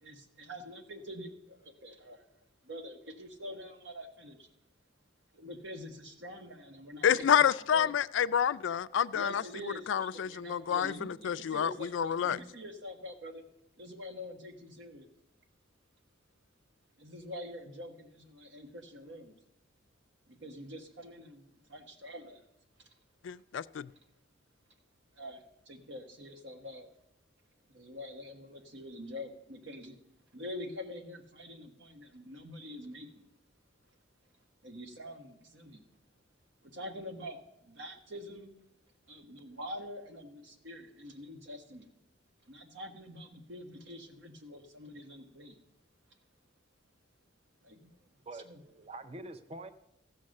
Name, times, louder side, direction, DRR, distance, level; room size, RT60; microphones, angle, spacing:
voice 1, 0.0-2.2 2.6-4.5 5.3-7.9 9.1-13.4 13.8-15.1 17.0-19.4 20.3-22.4 25.1-26.9 27.7-30.0 30.3-33.3 34.6-35.8 36.6-38.5 39.1-41.9 42.4-45.6 47.6-47.9 48.3-48.6, left 1 dB, 75° right, 1.4 m, -45 dB
voice 2, 7.0-9.4 9.9-12.4 23.2-23.9, left 8 dB, 75° left, 0.3 m, -28 dB
voice 3, 48.3-49.7, right 2 dB, 30° right, 0.5 m, -45 dB
14.5 x 6.4 x 6.4 m
head